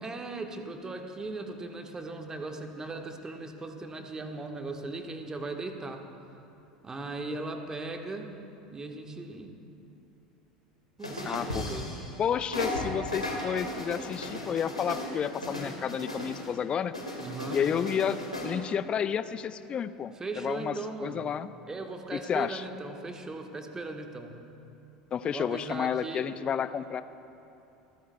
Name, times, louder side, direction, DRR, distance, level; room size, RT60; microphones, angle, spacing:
voice 1, 0.0-6.0 6.8-8.3 8.7-9.5 11.0-12.0 17.2-17.6 20.2-21.3 21.7-24.3 25.3-26.2, right 3 dB, 20° right, 4 dB, 1.4 m, -38 dB
sound 1, 11.0-12.2 12.5-16.5 16.9-18.5, left 1 dB, 85° left, 1.9 m, -36 dB
voice 2, 11.2-11.8 12.2-16.9 17.5-21.5 22.1-22.6 25.1-27.0, left 8 dB, 30° left, 14 dB, 0.5 m, -31 dB
30.0 x 14.0 x 2.3 m, 2.9 s
figure-of-eight pair, 75°, 3 cm